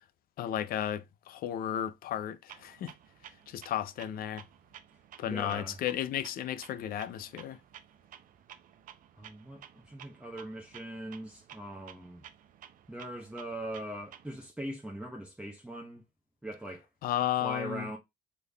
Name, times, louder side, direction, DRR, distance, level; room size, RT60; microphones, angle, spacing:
voice 1, 0.4-2.9 3.5-4.4 5.2-7.6 17.0-17.9, left 11 dB, 60° left, 0.5 m, -33 dB
Clock, 2.5-14.5, right 10 dB, 55° right, 0.5 m, -54 dB
voice 2, 5.3-5.8 9.2-12.2 12.9-16.0 16.4-16.9 17.4-18.0, right 1 dB, 5° right, 0.8 m, -41 dB
3.8 x 3.4 x 2.2 m
cardioid pair, 110°, 17 cm